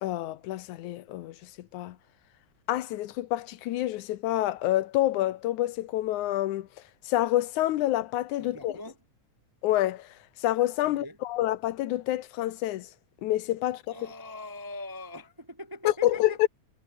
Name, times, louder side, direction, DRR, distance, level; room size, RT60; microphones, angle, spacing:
voice 1, 0.0-2.0 2.7-6.7 7.1-8.8 9.6-12.9 13.2-14.0 15.8-16.5, left 14 dB, 80° left, 2.3 m, -28 dB
voice 2, 8.4-9.0 10.8-11.2 13.9-16.5, left 2 dB, 15° right, 0.8 m, -41 dB
omnidirectional pair, 3.4 m